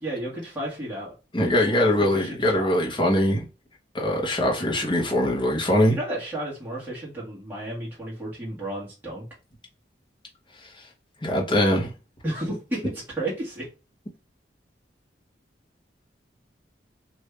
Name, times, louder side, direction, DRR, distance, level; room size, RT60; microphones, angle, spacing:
voice 1, 0.0-1.1 1.4-2.8 5.9-9.2 12.2-13.7, right 1 dB, 10° right, 1.7 m, -33 dB
voice 2, 1.3-3.5 3.9-6.0 11.2-11.9, left 1 dB, 25° left, 1.0 m, -22 dB
3.2 x 2.7 x 3.3 m
head